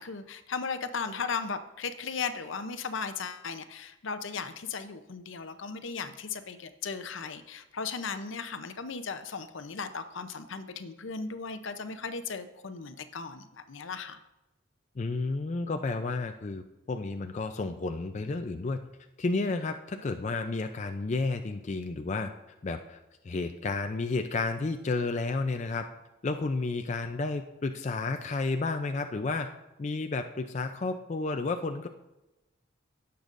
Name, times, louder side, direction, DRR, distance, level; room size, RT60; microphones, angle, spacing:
voice 1, 0.0-14.2, left 5 dB, 70° left, 10 dB, 0.7 m, -36 dB
voice 2, 15.0-18.8 19.2-22.3 22.6-23.0 23.2-25.9 26.2-29.5 29.8-31.9, left 3 dB, 35° left, 6 dB, 0.4 m, -31 dB
17.0 x 6.9 x 2.5 m, 1.0 s
head